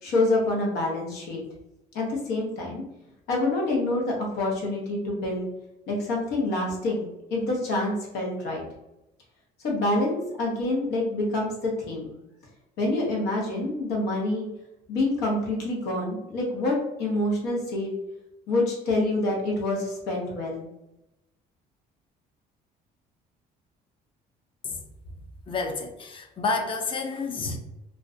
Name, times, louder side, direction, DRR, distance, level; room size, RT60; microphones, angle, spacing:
voice 1, 0.0-1.4 1.9-2.8 3.3-5.5 5.9-8.6 9.6-12.2 12.8-14.5 14.9-17.9 18.5-20.6, left 2 dB, 85° left, -2 dB, 0.8 m, -27 dB
voice 2, 25.5-27.6, left 4 dB, 30° left, 4 dB, 0.4 m, -29 dB
2.4 x 2.1 x 2.4 m, 0.91 s
cardioid pair, 110°, 17 cm